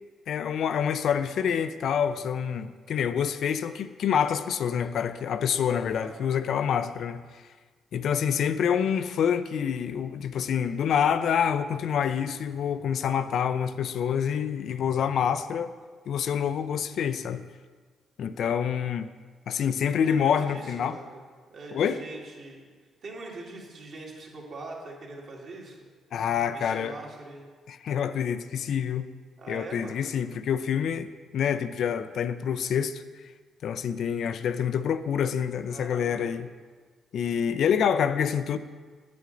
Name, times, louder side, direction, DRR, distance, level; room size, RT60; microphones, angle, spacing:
voice 1, 0.3-7.4 7.9-15.7 16.1-17.4 18.2-19.1 19.5-21.0 21.7-22.0 26.1-26.9 27.7-29.1 29.5-33.0 33.6-36.5 37.1-38.6, left 8 dB, 65° left, 12 dB, 0.4 m, -27 dB
voice 2, 6.0-6.3 20.0-21.2 21.5-22.6 23.0-25.9 26.5-27.4 29.4-30.0 35.7-36.5, right 2 dB, 60° right, -2 dB, 1.9 m, -42 dB
8.3 x 7.7 x 3.9 m, 1.5 s
cardioid pair, 90°, 0 cm